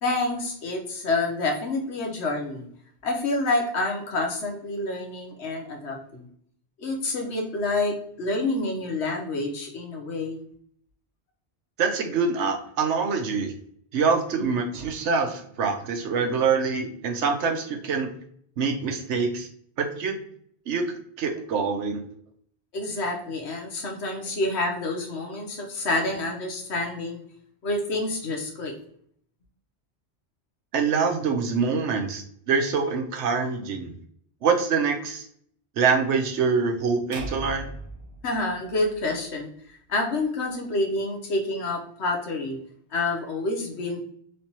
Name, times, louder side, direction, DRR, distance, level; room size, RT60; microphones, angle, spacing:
voice 1, 0.0-2.7 3.0-6.3 6.8-10.4 22.7-27.2 27.6-28.7 38.2-39.5 39.9-42.6 42.9-44.0, left 2 dB, 75° left, 1 dB, 1.2 m, -28 dB
voice 2, 11.8-13.5 13.9-18.1 18.6-19.5 19.8-20.2 20.7-22.0 30.7-33.9 34.4-35.2 35.8-37.7, right 5 dB, 85° right, 4 dB, 1.0 m, -25 dB
sound 1, 37.1-39.4, right 2 dB, 30° right, 0.7 m, -39 dB
3.3 x 3.2 x 2.8 m, 0.64 s
omnidirectional pair, 1.1 m